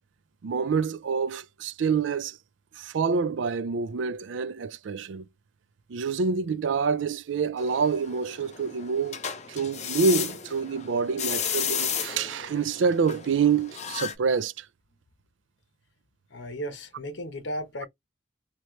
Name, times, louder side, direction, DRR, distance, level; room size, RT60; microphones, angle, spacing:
voice 1, 0.4-2.4 2.8-5.3 5.9-9.2 9.5-14.7, right 5 dB, 90° right, 0.4 m, -27 dB
sound 1, 7.6-14.1, left 8 dB, 40° left, 0.6 m, -34 dB
voice 2, 16.3-17.9, equal, 80° left, 1.0 m, -35 dB
3.0 x 2.9 x 3.1 m
head